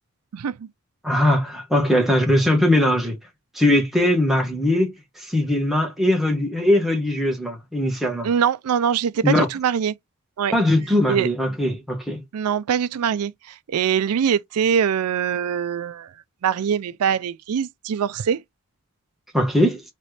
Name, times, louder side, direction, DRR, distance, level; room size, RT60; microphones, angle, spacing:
voice 1, 0.3-0.7 8.2-9.9 10.4-10.5 11.1-11.3 12.3-16.1 16.4-18.4, right 7 dB, 90° right, 0.4 m, -23 dB
voice 2, 1.0-3.2 3.5-8.3 9.2-9.5 10.5-12.2 19.3-19.8, left 1 dB, ahead, 1.1 m, -20 dB
4.2 x 3.0 x 3.2 m
head